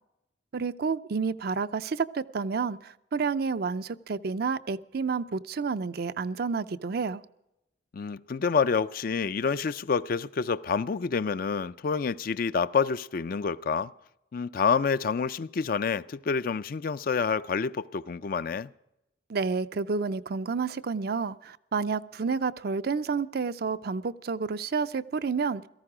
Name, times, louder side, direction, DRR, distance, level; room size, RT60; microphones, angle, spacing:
voice 1, 0.5-7.2 19.3-25.7, right 5 dB, 60° right, 0.5 m, -30 dB
voice 2, 7.9-13.9 14.3-18.7, left 5 dB, 55° left, 0.4 m, -28 dB
17.0 x 14.0 x 4.9 m
head